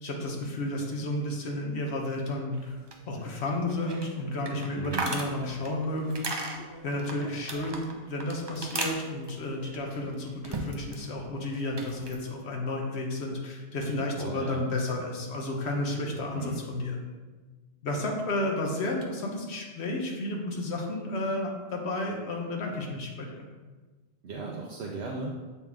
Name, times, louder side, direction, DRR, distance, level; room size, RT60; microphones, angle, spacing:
voice 1, 0.0-2.8 3.1-6.5 6.8-17.0 17.8-23.4, left 1 dB, 75° left, 0 dB, 1.2 m, -32 dB
sound 1, 2.5-11.1 11.3-12.2, right 2 dB, 30° right, 0.6 m, -38 dB
voice 2, 4.8-5.1 14.2-14.6 16.3-16.6 24.2-25.3, right 3 dB, 70° right, -2 dB, 0.9 m, -36 dB
7.2 x 4.4 x 3.5 m, 1.3 s
omnidirectional pair, 1.1 m